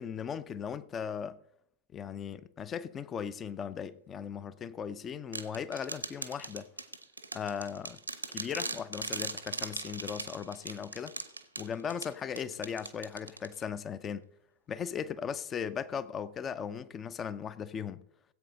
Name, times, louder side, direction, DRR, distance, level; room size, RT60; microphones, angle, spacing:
voice 1, 0.0-1.4 1.9-6.7 7.3-8.0 8.3-11.1 11.6-14.2 14.7-18.0, left 7 dB, 25° left, 0.7 m, -38 dB
sound 1, 5.3-13.8, right 3 dB, 85° right, 1.0 m, -40 dB
17.0 x 8.4 x 3.9 m
figure-of-eight pair, 90°, 0 cm